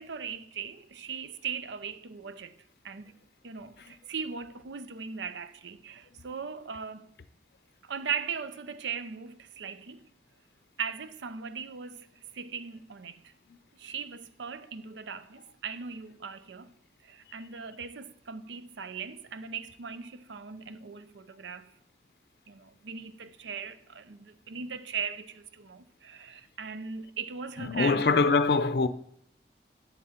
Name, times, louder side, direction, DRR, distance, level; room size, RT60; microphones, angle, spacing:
voice 1, 0.0-2.5 2.8-3.1 3.4-7.1 7.8-10.1 10.8-12.1 12.3-13.3 13.8-16.7 17.0-21.7 22.5-28.3, right 6 dB, 80° right, 0.6 m, -39 dB
voice 2, 27.6-28.9, left 4 dB, 60° left, 0.5 m, -24 dB
11.0 x 7.3 x 4.3 m
head